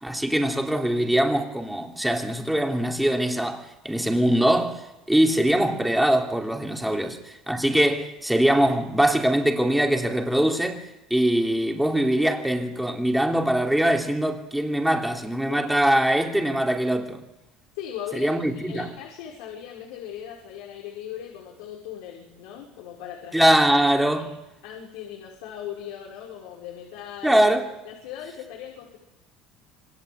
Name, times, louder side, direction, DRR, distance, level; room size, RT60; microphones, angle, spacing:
voice 1, 0.0-7.2 7.5-10.8 11.1-17.2 18.1-18.9 23.3-24.3 27.2-27.7, right 1 dB, 5° right, 3.0 m, -22 dB
voice 2, 17.7-23.6 24.2-24.3 24.6-27.4 27.9-29.0, left 10 dB, 85° left, 5.6 m, -39 dB
27.5 x 24.0 x 8.1 m
cardioid pair, 155°, 0 cm